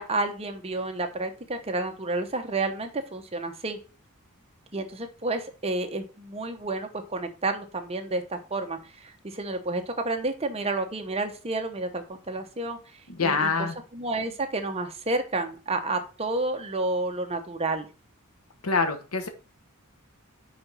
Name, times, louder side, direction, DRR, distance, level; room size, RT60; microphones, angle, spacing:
voice 1, 0.0-3.8 4.7-17.9, right 2 dB, 25° right, 6 dB, 0.8 m, -30 dB
voice 2, 13.1-13.7 18.6-19.3, left 4 dB, 75° left, 7 dB, 1.1 m, -25 dB
5.3 x 4.0 x 6.0 m, 0.34 s
head